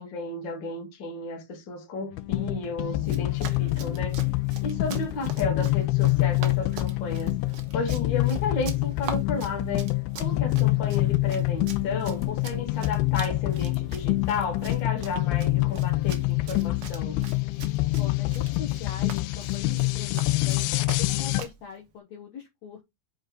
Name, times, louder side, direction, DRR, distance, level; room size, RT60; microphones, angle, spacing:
voice 1, 0.0-4.2 4.6-7.4 7.7-17.2, left 3 dB, 40° left, 1.9 m, -33 dB
sound 1, 2.1-21.4, left 20 dB, 85° left, 2.6 m, -26 dB
Run, 3.0-21.6, right 7 dB, 75° right, 1.3 m, -43 dB
voice 2, 18.0-22.8, left 6 dB, 60° left, 2.1 m, -42 dB
6.3 x 4.7 x 4.5 m
omnidirectional pair, 4.4 m